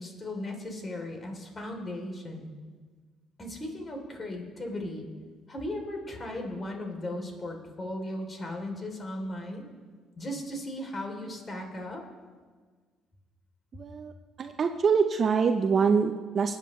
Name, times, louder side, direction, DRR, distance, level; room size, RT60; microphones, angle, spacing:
voice 1, 0.0-2.5 3.4-5.1 5.5-9.7 10.2-12.0, left 1 dB, 30° left, 2 dB, 3.1 m, -37 dB
voice 2, 13.7-14.1 14.4-16.6, right 5 dB, 45° right, 7 dB, 0.6 m, -25 dB
20.5 x 8.9 x 3.2 m, 1.5 s
supercardioid pair, 65°, 0 cm